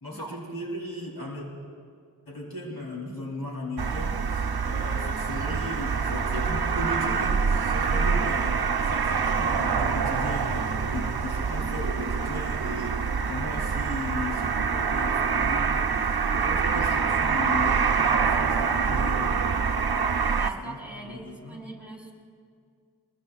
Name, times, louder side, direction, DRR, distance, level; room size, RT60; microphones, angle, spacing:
voice 1, 0.0-1.5 2.3-8.6 8.8-19.4 20.6-20.8 21.0-21.6, left 1 dB, 65° left, -2 dB, 2.8 m, -37 dB
sound 1, 3.8-20.5, right 5 dB, 80° right, 0.7 m, -25 dB
voice 2, 20.3-22.1, right 3 dB, 5° right, -3 dB, 5.0 m, -40 dB
24.0 x 21.5 x 2.4 m, 2.1 s
wide cardioid pair, 60°, 37 cm